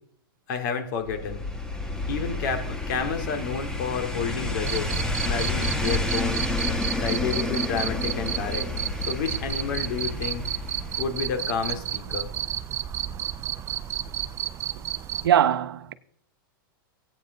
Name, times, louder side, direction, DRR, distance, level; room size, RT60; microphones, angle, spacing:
voice 1, 0.5-1.4 2.1-4.9 5.2-6.4 7.0-8.7 9.1-10.5 11.0-12.3, left 6 dB, 55° left, 2.3 m, -30 dB
sound 1, 1.1-11.4 11.7-11.8, left 2 dB, 5° left, 1.1 m, -30 dB
Cricket, 4.6-15.3, right 11 dB, 25° right, 0.4 m, -32 dB
voice 2, 15.2-15.9, right 10 dB, 80° right, 0.8 m, -21 dB
16.0 x 9.0 x 4.0 m
supercardioid pair, 140°, 12 cm